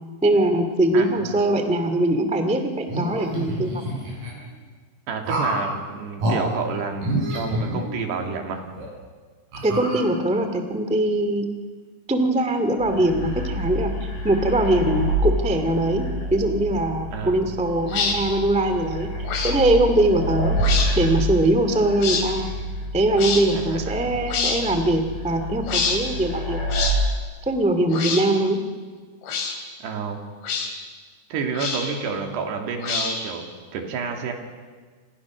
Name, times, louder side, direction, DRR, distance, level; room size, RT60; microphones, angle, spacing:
voice 1, 0.2-4.0 9.6-11.4 12.1-19.1 19.4-20.6 20.9-22.5 22.9-26.6 27.4-28.6, right 1 dB, 5° right, 7 dB, 0.9 m, -22 dB
voice 2, 0.9-1.5 5.1-8.6 17.1-17.4 23.5-24.2 29.8-30.3 31.3-34.3, right 5 dB, 75° right, 3 dB, 4.6 m, -30 dB
sound 1, 2.9-4.3 5.2-5.7 6.2-6.4 7.0-8.3 8.7-8.9 9.5-10.4, right 1 dB, 45° right, 9.1 m, -27 dB
sound 2, 12.8-26.9, equal, 40° left, 8.4 m, -28 dB
sound 3, 17.9-18.2 19.3-19.6 20.6-20.9 22.0-22.3 23.2-23.4 24.3-24.6 25.7-26.0 26.7-27.0 27.9-28.3 29.2-29.6 30.4-30.7 31.6-32.0 32.8-33.3, left 5 dB, 85° left, 5.7 m, -25 dB
29.0 x 28.0 x 6.4 m, 1.5 s
omnidirectional pair, 4.9 m